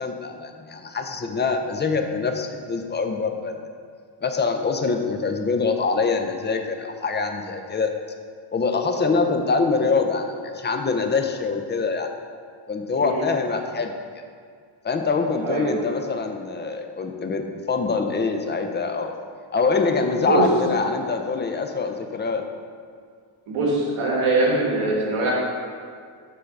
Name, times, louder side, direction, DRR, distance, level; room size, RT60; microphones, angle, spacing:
voice 1, 0.0-3.5 4.2-7.9 8.5-12.1 12.7-13.9 14.8-19.1 19.5-22.5, left 4 dB, 25° left, 5 dB, 0.5 m, -24 dB
voice 2, 15.4-15.7 20.2-20.4 23.5-25.3, right 2 dB, 85° right, -4 dB, 1.5 m, -23 dB
6.5 x 3.8 x 5.9 m, 2.1 s
cardioid pair, 125°, 49 cm